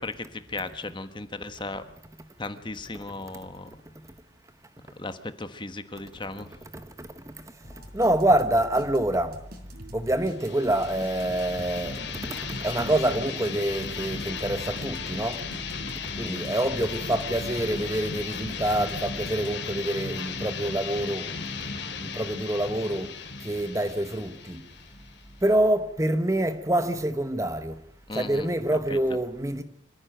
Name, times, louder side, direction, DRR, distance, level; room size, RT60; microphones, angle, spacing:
voice 1, 0.0-1.8 2.4-3.7 4.9-6.5 16.2-16.4 28.1-28.5 28.9-29.0, left 2 dB, 25° left, 1.3 m, -36 dB
voice 2, 7.0-7.3 7.9-9.4 9.9-12.0 12.3-15.4 16.2-21.4 21.7-23.1 23.4-24.6 25.4-27.8 28.1-29.6, right 1 dB, 15° right, 1.0 m, -26 dB
sound 1, 7.6-19.8, equal, 50° right, 4.4 m, -43 dB
sound 2, 10.3-25.7, left 5 dB, 60° left, 2.6 m, -36 dB
26.0 x 15.5 x 9.0 m
head